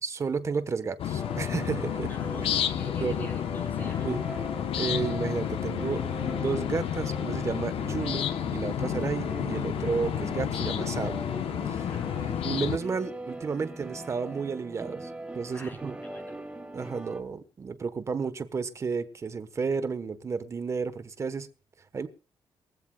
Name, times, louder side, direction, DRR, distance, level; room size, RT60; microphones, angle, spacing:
voice 1, 0.0-2.1 3.0-3.3 4.0-4.2 4.8-6.0 6.3-11.3 11.7-15.9 16.7-21.5 21.9-22.1, right 5 dB, 30° right, 1.2 m, -32 dB
sound 1, 1.0-12.8, left 10 dB, 80° left, 1.0 m, -31 dB
sound 2, 1.2-17.2, right 2 dB, 10° right, 1.6 m, -41 dB
voice 2, 2.1-4.1 11.9-12.9 15.5-16.4, left 1 dB, 20° left, 4.5 m, -50 dB
23.0 x 15.5 x 2.3 m
wide cardioid pair, 175°, 9 cm